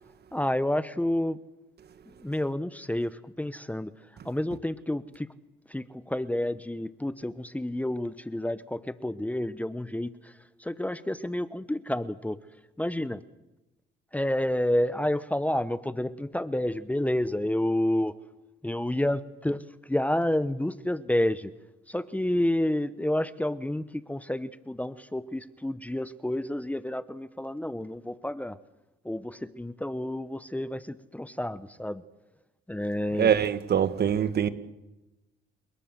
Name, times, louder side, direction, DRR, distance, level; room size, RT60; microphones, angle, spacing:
voice 1, 0.3-1.4 2.2-3.9 4.2-5.3 5.7-10.3 10.6-12.4 12.8-13.2 14.1-18.2 18.6-21.5 21.9-28.6 29.0-32.0 32.7-33.3, left 1 dB, 5° left, 1.0 m, -29 dB
voice 2, 33.2-34.5, right 8 dB, 55° right, 1.8 m, -23 dB
29.0 x 18.5 x 7.7 m
cardioid pair, 90°, 20 cm